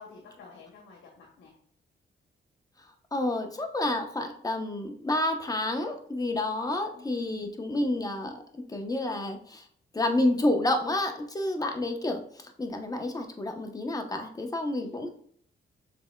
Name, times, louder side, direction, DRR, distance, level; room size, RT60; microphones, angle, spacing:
voice 1, 0.0-1.5 6.9-7.5 14.8-15.1, left 4 dB, 85° left, 0 dB, 1.1 m, -50 dB
voice 2, 3.1-9.7 9.9-12.2 12.6-15.1, left 1 dB, 20° left, 4 dB, 0.8 m, -29 dB
6.7 x 3.5 x 2.2 m, 0.62 s
cardioid pair, 90°, 20 cm